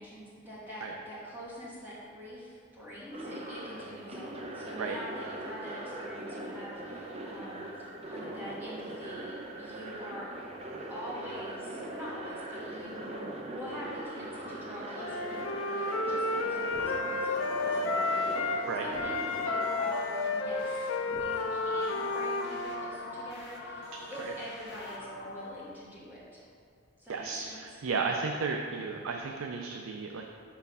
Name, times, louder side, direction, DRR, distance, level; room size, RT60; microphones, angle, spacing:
voice 1, 0.0-10.3 10.9-19.2 19.4-26.4 27.0-27.6, equal, 10° right, -9 dB, 1.4 m, -45 dB
sound 1, 3.1-19.7, right 1 dB, 30° right, 0.6 m, -41 dB
Wind instrument woodwind instrument, 15.0-18.7 18.9-22.9, left 3 dB, 75° left, 0.5 m, -31 dB
sound 2, 16.7-25.5, left 2 dB, 55° left, 0.9 m, -43 dB
voice 2, 27.1-30.2, right 4 dB, 80° right, 2 dB, 0.4 m, -34 dB
5.9 x 4.5 x 5.3 m, 2.4 s
head